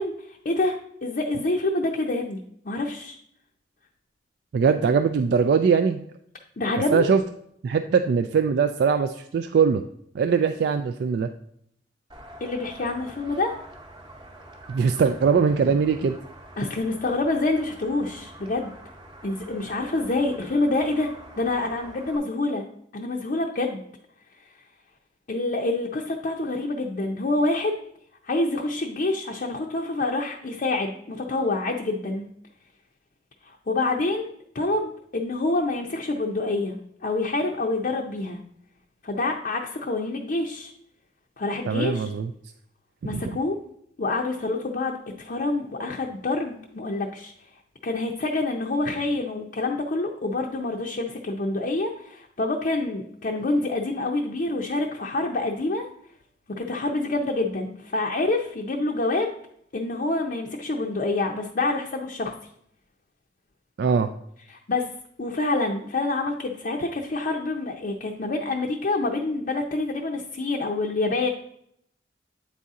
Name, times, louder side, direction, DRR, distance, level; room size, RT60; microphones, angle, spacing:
voice 1, 0.0-2.4 2.7-3.2 6.6-7.1 12.4-13.6 16.6-18.7 19.2-21.1 21.4-22.6 22.9-23.8 25.3-27.8 28.2-32.3 33.4-34.3 34.5-36.8 37.0-38.4 39.0-40.7 41.4-42.1 43.0-43.6 44.0-47.3 47.8-55.9 56.6-59.3 59.7-62.3 64.5-64.9 65.2-71.3, left 2 dB, 45° left, 1 dB, 0.5 m, -27 dB
voice 2, 4.5-6.1 6.9-7.2 7.6-9.8 10.1-11.3 14.7-16.2 41.7-42.3 43.0-43.2 63.8-64.1, right 6 dB, 60° right, 7 dB, 0.3 m, -21 dB
sound 1, 12.1-22.2, right 1 dB, 25° right, 0.9 m, -46 dB
8.6 x 4.1 x 3.6 m, 0.71 s
head